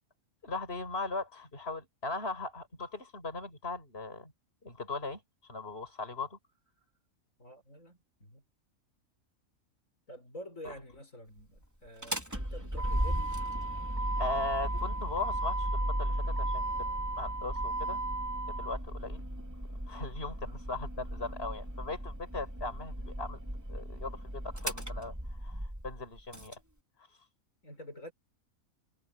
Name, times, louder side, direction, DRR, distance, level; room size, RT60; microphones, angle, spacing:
voice 1, 0.4-4.3 4.6-6.4 10.6-10.7 14.2-18.0 18.6-19.2 19.9-23.4 23.7-26.5, left 3 dB, 45° left, 6.2 m, -39 dB
voice 2, 7.4-8.4 10.1-13.3 27.6-28.1, left 1 dB, 70° left, 7.3 m, -48 dB
Motor vehicle (road), 11.9-26.5, right 1 dB, 10° right, 4.7 m, -35 dB
omnidirectional pair, 1.4 m